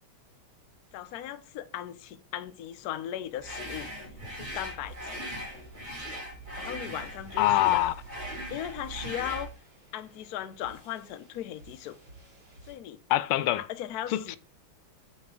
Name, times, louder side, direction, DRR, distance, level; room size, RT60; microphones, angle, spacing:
voice 1, 0.9-3.9 4.4-5.2 6.6-8.0 8.5-9.5 9.9-12.0 12.7-13.0 13.5-14.4, left 11 dB, 70° left, 0.9 m, -38 dB
sound 1, 3.4-9.5, equal, 30° right, 3.2 m, -39 dB
Heavy Prog Metal, 4.8-12.8, right 2 dB, 50° right, 3.8 m, -56 dB
voice 2, 7.4-7.9 13.1-13.6 14.1-14.4, left 14 dB, 85° left, 1.5 m, -24 dB
7.1 x 5.6 x 3.7 m
omnidirectional pair, 2.3 m